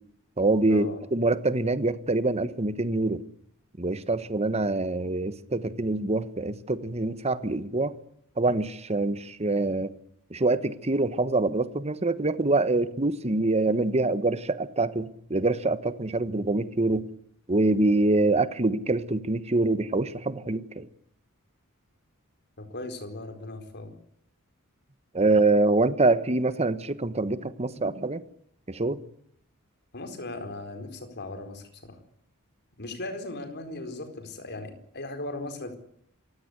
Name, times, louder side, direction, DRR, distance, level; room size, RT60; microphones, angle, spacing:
voice 1, 0.4-3.2 3.8-7.9 8.4-9.9 10.3-17.1 17.5-20.9 25.1-28.2 28.7-29.0, right 2 dB, 30° right, 1.2 m, -25 dB
voice 2, 22.6-23.9 29.9-32.0 32.8-35.8, left 2 dB, 50° left, 4.4 m, -38 dB
27.0 x 16.0 x 8.1 m
head